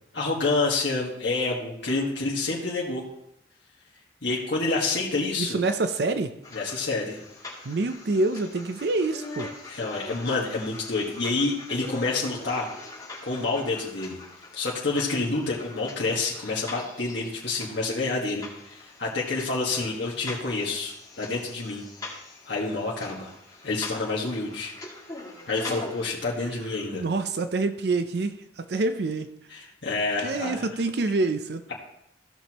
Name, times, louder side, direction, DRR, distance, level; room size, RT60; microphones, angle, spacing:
voice 1, 0.1-3.0 4.2-5.6 6.5-7.2 9.6-12.7 13.2-14.2 14.5-18.4 18.7-22.2 22.5-23.3 23.6-24.7 25.5-27.0 29.5-30.7, left 3 dB, 75° left, -4 dB, 1.6 m, -28 dB
voice 2, 5.4-6.3 7.7-9.5 26.9-29.3 30.2-31.6, right 3 dB, 60° right, 9 dB, 0.5 m, -26 dB
sound 1, 6.4-26.1, left 2 dB, 20° left, 2.4 m, -42 dB
15.5 x 6.2 x 3.0 m, 0.79 s
head